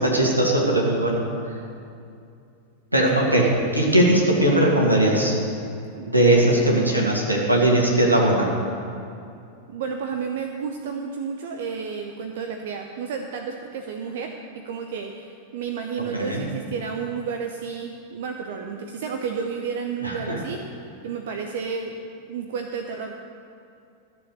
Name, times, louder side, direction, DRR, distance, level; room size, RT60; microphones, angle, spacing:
voice 1, 0.0-1.2 2.9-5.4 6.1-8.5 16.1-16.4 20.0-20.4, right 1 dB, 85° right, -2 dB, 2.3 m, -19 dB
voice 2, 6.0-7.2 9.7-20.6 21.0-22.0 22.3-23.1, right 6 dB, 55° right, 4 dB, 0.8 m, -31 dB
14.0 x 7.2 x 6.7 m, 2.5 s
figure-of-eight pair, 90°, 0 cm